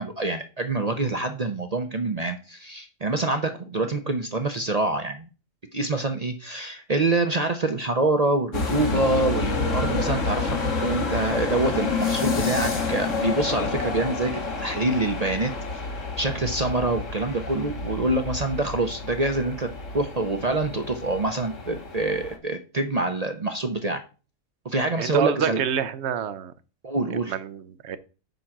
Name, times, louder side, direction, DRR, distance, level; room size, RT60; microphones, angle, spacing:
voice 1, 0.0-5.3 5.7-14.3 14.6-15.5 16.2-19.7 19.9-24.0 24.6-25.6 26.8-27.3, right 2 dB, 40° right, 0.7 m, -26 dB
sound 1, 8.5-22.4, left 4 dB, 65° left, 1.8 m, -29 dB
voice 2, 25.0-26.5 27.2-28.0, right 8 dB, 60° right, 0.9 m, -27 dB
9.1 x 3.8 x 5.9 m
omnidirectional pair, 1.4 m